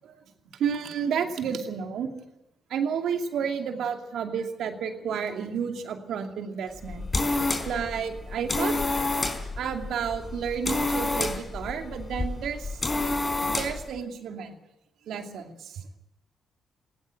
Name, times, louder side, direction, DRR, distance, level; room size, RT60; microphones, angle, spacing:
voice 1, 0.6-2.1 2.7-7.0 7.7-8.8 9.6-12.7 13.5-14.6 15.1-15.8, right 7 dB, 70° right, 4 dB, 2.6 m, -31 dB
sound 1, 6.7-13.9, left 2 dB, 35° left, 4.3 m, -29 dB
19.5 x 18.0 x 7.9 m, 0.88 s
hypercardioid pair, 45°, 0 cm